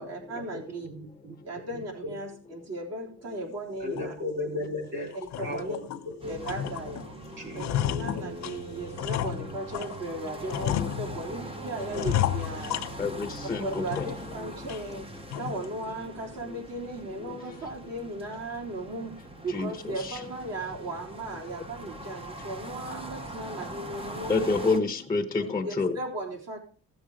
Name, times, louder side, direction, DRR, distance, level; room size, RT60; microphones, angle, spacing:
voice 1, 0.0-0.9 1.4-4.1 5.1-5.8 6.2-7.2 7.5-13.0 13.6-15.1 15.3-19.1 19.4-24.5 24.8-24.9 25.4-26.6, right 2 dB, 55° right, 3.9 m, -37 dB
voice 2, 0.9-1.3 2.0-2.2 3.8-5.1 5.4-5.8 6.2-6.4 7.4-7.6, left 2 dB, 35° right, 4.3 m, -34 dB
sound 1, 4.0-4.1 4.6-4.7 5.1-6.1 6.4-7.1 7.3-10.0 10.5-11.4 11.9-13.4 13.7-14.3 14.7-14.8 15.3-15.7, left 12 dB, 60° left, 0.6 m, -32 dB
sound 2, 6.2-24.8, right 2 dB, 20° right, 0.8 m, -42 dB
voice 3, 7.3-7.9 8.5-8.6 12.6-14.1 14.4-14.7 15.2-15.4 16.4-16.6 17.3-17.6 19.5-20.2 24.2-26.0, left 4 dB, 10° left, 0.9 m, -30 dB
16.0 x 7.1 x 5.0 m
cardioid pair, 175°, 31 cm